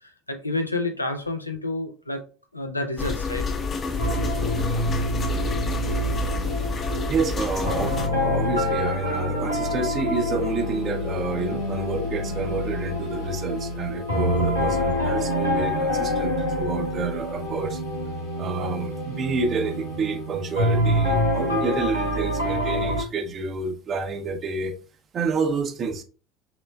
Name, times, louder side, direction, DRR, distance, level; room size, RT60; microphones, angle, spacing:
voice 1, 0.0-2.2 2.5-3.5 5.3-5.4, left 2 dB, 85° left, 0.5 m, -29 dB
sound 1, 3.0-8.1, left 5 dB, 35° left, 0.8 m, -29 dB
sound 2, 4.0-23.0, left 1 dB, 90° right, 1.5 m, -27 dB
voice 2, 7.1-17.8 18.4-24.8 25.1-26.0, right 4 dB, 35° right, 0.7 m, -29 dB
sound 3, 10.5-21.2, right 1 dB, 60° left, 2.0 m, -37 dB
6.0 x 3.2 x 2.2 m
figure-of-eight pair, 65°, 0 cm